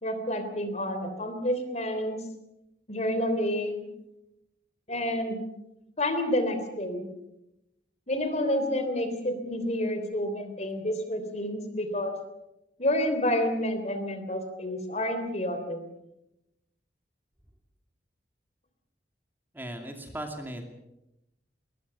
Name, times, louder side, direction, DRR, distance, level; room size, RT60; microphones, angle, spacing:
voice 1, 0.0-2.2 2.9-3.8 4.9-5.4 6.0-7.1 8.1-12.1 12.8-15.8, left 1 dB, 40° left, 8 dB, 3.3 m, -29 dB
voice 2, 19.5-20.6, right 1 dB, 10° right, 3 dB, 2.6 m, -37 dB
21.0 x 20.5 x 7.0 m, 0.88 s
head